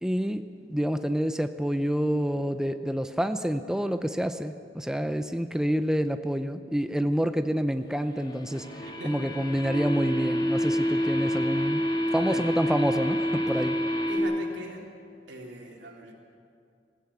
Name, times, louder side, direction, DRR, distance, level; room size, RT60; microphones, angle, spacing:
voice 1, 0.0-8.7 9.0-11.8 12.1-13.8, equal, 5° right, 8 dB, 0.5 m, -28 dB
sound 1, 8.2-14.2, equal, 25° left, 2.4 m, -28 dB
voice 2, 9.0-9.5 12.1-12.4 14.1-14.8 15.3-16.1, right 1 dB, 85° right, 0 dB, 3.4 m, -41 dB
20.5 x 15.5 x 8.6 m, 2.3 s
head